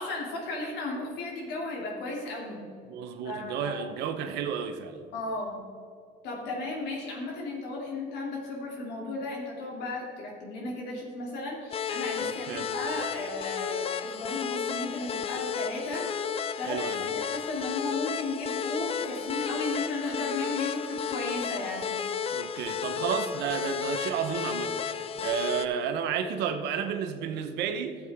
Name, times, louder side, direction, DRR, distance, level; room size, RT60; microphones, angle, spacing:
voice 1, 0.0-2.6 3.2-3.8 5.1-5.5 6.2-16.1 16.6-21.9, left 2 dB, 85° left, -2 dB, 2.8 m, -34 dB
voice 2, 2.9-5.0 12.2-12.7 16.6-17.0 22.3-28.0, right 7 dB, 85° right, 8 dB, 0.9 m, -32 dB
sound 1, 11.7-25.7, left 7 dB, 35° left, 0.5 m, -33 dB
13.5 x 7.7 x 3.6 m, 2.4 s
cardioid pair, 110°, 17 cm